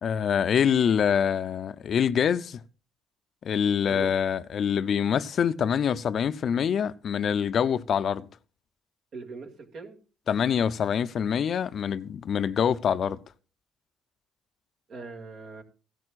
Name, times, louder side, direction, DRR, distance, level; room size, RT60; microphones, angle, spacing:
voice 1, 0.0-2.6 3.4-8.3 10.3-13.2, left 8 dB, 50° left, 0.5 m, -25 dB
voice 2, 9.1-10.0 14.9-15.6, right 4 dB, 55° right, 2.2 m, -41 dB
16.0 x 12.5 x 2.4 m
cardioid pair, 115°, 0 cm